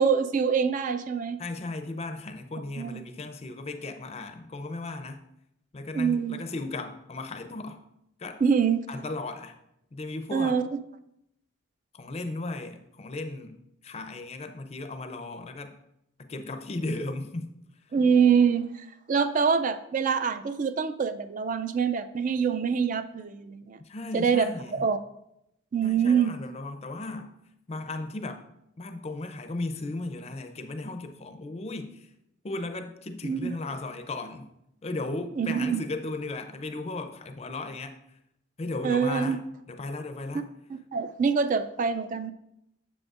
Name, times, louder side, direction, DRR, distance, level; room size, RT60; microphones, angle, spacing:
voice 1, 0.0-1.4 2.8-3.0 5.9-6.4 8.4-8.8 10.3-10.6 17.9-23.8 24.1-25.0 25.7-26.3 33.2-33.5 35.4-35.8 38.8-39.4 40.7-42.3, right 6 dB, 40° right, 12 dB, 0.3 m, -25 dB
voice 2, 1.4-5.2 5.7-7.8 8.2-8.4 8.9-9.5 9.9-10.6 11.9-13.6 13.8-15.8 16.2-17.5 23.8-24.8 25.8-27.3 27.7-28.5 28.8-32.1 32.4-34.5 34.8-38.0 38.6-39.4 39.7-40.5, left 2 dB, 30° left, 7 dB, 0.5 m, -36 dB
7.7 x 7.0 x 2.4 m, 0.81 s
head